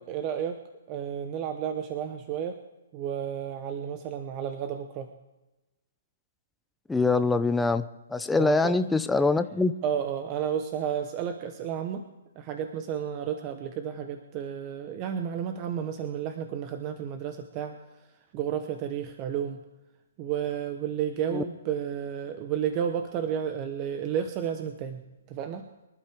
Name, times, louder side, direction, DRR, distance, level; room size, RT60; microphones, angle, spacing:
voice 1, 0.1-0.6 0.9-2.6 2.9-5.1 8.3-8.7 9.8-12.0 12.4-17.8 18.3-19.6 20.2-25.0 25.3-25.6, right 8 dB, 25° right, 7 dB, 0.9 m, -32 dB
voice 2, 6.9-9.7 21.3-21.4, left 3 dB, 5° left, 9 dB, 0.5 m, -24 dB
24.5 x 11.5 x 3.5 m, 1.0 s
hypercardioid pair, 155°, 0 cm